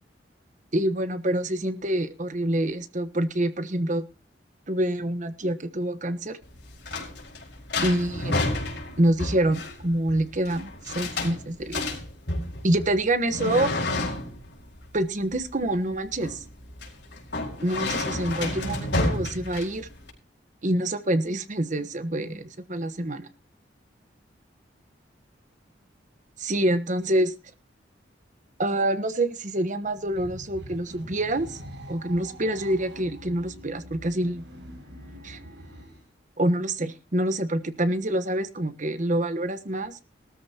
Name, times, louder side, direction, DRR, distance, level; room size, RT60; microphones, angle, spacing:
voice 1, 0.7-4.1 4.7-6.4 7.8-8.3 9.0-11.8 12.6-13.7 14.9-16.4 17.6-19.9 20.6-23.3 26.4-27.3 28.6-31.6 31.9-34.4 35.2-35.4 36.4-40.0, right 1 dB, 40° right, 11 dB, 1.2 m, -26 dB
sound 1, 6.4-20.1, left 2 dB, 65° left, 4.7 m, -31 dB
sound 2, 29.8-36.1, equal, 70° right, 6.3 m, -44 dB
19.0 x 13.5 x 2.9 m, 0.32 s
head